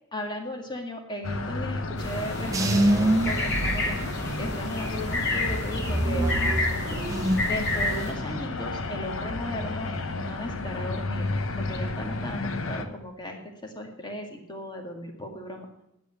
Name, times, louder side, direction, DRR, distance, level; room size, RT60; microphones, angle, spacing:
voice 1, 0.1-4.0 4.4-6.3 7.4-11.3 11.6-15.7, left 1 dB, 20° left, 3 dB, 2.0 m, -36 dB
sound 1, 1.2-12.9, left 2 dB, 85° left, 1.0 m, -32 dB
sound 2, 2.0-8.1, left 2 dB, 55° left, 2.9 m, -30 dB
sound 3, 2.5-4.6 5.0-7.6 7.9-8.5, right 1 dB, 15° right, 1.1 m, -26 dB
10.0 x 7.8 x 9.0 m, 0.83 s
head